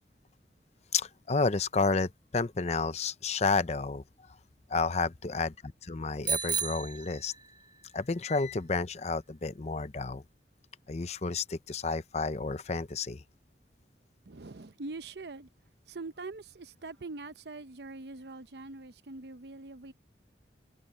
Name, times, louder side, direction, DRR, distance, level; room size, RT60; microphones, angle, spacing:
voice 1, 0.9-4.0 4.7-5.5 5.8-7.3 7.9-10.2 10.9-13.2, left 4 dB, 40° left, 0.6 m, -31 dB
Bicycle bell, 6.2-7.8, right 6 dB, 25° right, 0.7 m, -33 dB
voice 2, 14.3-15.5 15.9-19.9, right 3 dB, 70° right, 0.8 m, -43 dB
head